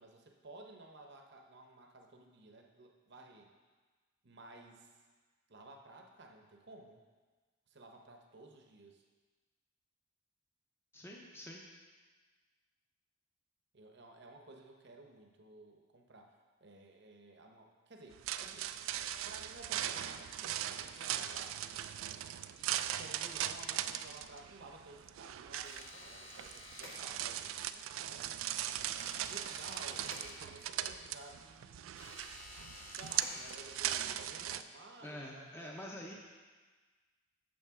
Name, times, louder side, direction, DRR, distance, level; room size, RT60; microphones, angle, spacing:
voice 1, 0.0-3.5 4.2-4.9 5.5-7.0 7.7-9.0 13.7-16.3 16.6-18.7 19.2-21.9 22.5-28.3 29.3-32.1 32.9-36.1, right 2 dB, 55° right, 2 dB, 0.9 m, -55 dB
voice 2, 10.9-11.6 35.0-36.1, left 1 dB, 10° left, -2 dB, 0.6 m, -46 dB
sound 1, 18.1-34.6, right 11 dB, 85° right, 0.3 m, -39 dB
sound 2, 25.7-27.5 29.0-30.9 31.9-34.0, left 2 dB, 75° left, 1.4 m, -52 dB
8.6 x 6.5 x 3.6 m, 1.4 s
head